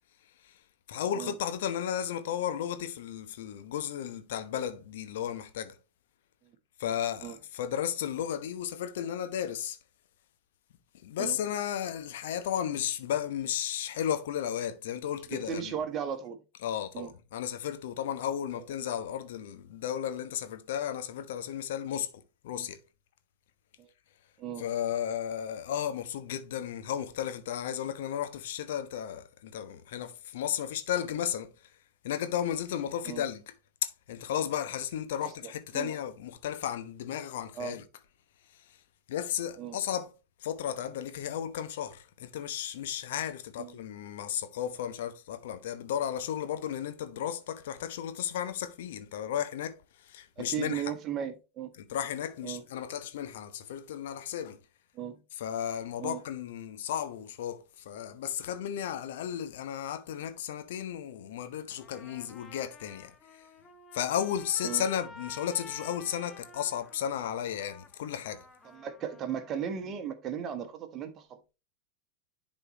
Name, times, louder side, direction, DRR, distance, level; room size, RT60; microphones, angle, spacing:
voice 1, 0.9-5.8 6.8-9.8 11.0-15.8 16.5-22.8 24.6-31.5 32.0-33.5 33.8-37.9 39.1-40.1 40.4-50.9 51.7-54.6 55.3-63.4 63.9-68.4, left 9 dB, 55° left, 0.9 m, -34 dB
voice 2, 15.3-16.4 16.9-17.1 22.6-22.7 23.8-23.9 24.4-24.6 33.0-33.2 35.2-35.9 37.6-37.8 39.6-39.8 43.6-43.8 50.4-51.7 52.4-52.6 54.9-55.2 56.0-56.2 64.6-64.8 68.7-71.5, right 8 dB, 30° right, 1.3 m, -36 dB
Trumpet, 61.7-69.7, left 3 dB, 20° left, 1.1 m, -51 dB
11.0 x 4.3 x 3.0 m
figure-of-eight pair, 90°, 0 cm